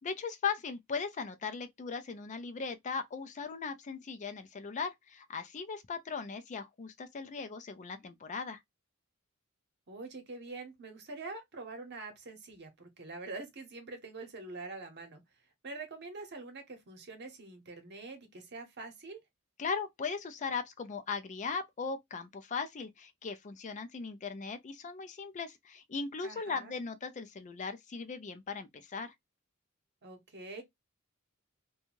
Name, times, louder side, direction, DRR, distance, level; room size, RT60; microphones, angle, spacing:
voice 1, 0.0-8.6 19.6-29.1, left 5 dB, 35° left, 0.4 m, -38 dB
voice 2, 9.9-15.2 15.6-19.2 26.2-26.7 30.0-30.6, right 3 dB, 55° right, 0.9 m, -45 dB
2.6 x 2.3 x 2.9 m
head